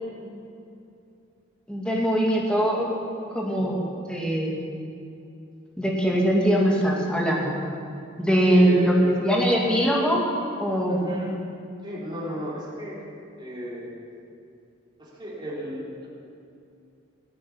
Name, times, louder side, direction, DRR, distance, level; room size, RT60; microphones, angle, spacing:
voice 1, 1.7-2.9 3.3-4.6 5.8-7.5 8.2-10.2 10.6-11.1, equal, 5° left, -3 dB, 2.3 m, -22 dB
voice 2, 8.4-9.0 10.9-11.3 11.8-13.0 13.4-13.9 15.0-16.1, equal, 25° right, -6 dB, 3.3 m, -34 dB
15.5 x 8.6 x 8.5 m, 2.6 s
head